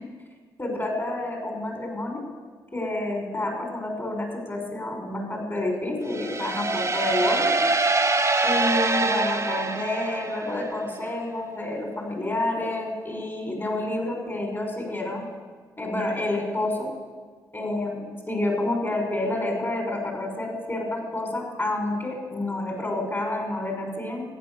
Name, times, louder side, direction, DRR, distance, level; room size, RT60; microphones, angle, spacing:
voice 1, 0.6-2.2 2.7-7.6 8.4-15.3 15.8-16.9 17.5-24.2, left 1 dB, 20° left, 1 dB, 5.7 m, -29 dB
sound 1, 6.1-10.8, right 3 dB, 25° right, 1.4 m, -24 dB
14.5 x 9.5 x 7.0 m, 1.5 s
hypercardioid pair, 45°, 10 cm